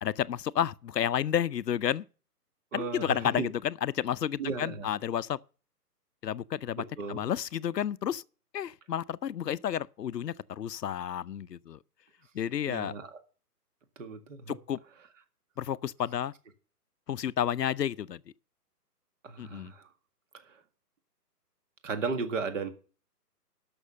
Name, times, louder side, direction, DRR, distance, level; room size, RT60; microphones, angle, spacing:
voice 1, 0.0-2.0 2.7-5.4 6.2-8.2 8.5-11.8 12.3-12.9 14.7-14.8 15.6-16.3 17.1-18.2 19.4-19.7, left 10 dB, 80° left, 0.7 m, -31 dB
voice 2, 2.7-3.5 4.4-4.9 6.8-7.2 12.6-13.2 14.0-14.6 19.2-19.9 20.3-20.6 21.8-22.7, right 4 dB, 50° right, 1.9 m, -35 dB
12.5 x 6.2 x 6.5 m
hypercardioid pair, 150°, 48 cm